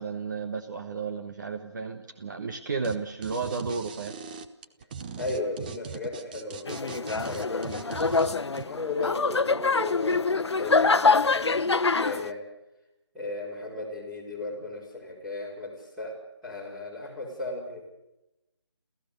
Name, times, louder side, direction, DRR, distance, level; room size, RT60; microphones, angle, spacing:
voice 1, 0.0-4.1, right 5 dB, 40° right, 6 dB, 1.3 m, -33 dB
sound 1, 2.8-2.9 3.2-8.6, right 7 dB, 20° right, 0.7 m, -39 dB
voice 2, 5.2-8.0 8.5-12.4 13.1-16.1 16.4-17.9, left 2 dB, 5° right, -6 dB, 4.4 m, -36 dB
sound 2, 6.7-12.3, left 4 dB, 75° left, 0.9 m, -25 dB
28.5 x 15.0 x 6.7 m, 0.94 s
figure-of-eight pair, 160°, 15 cm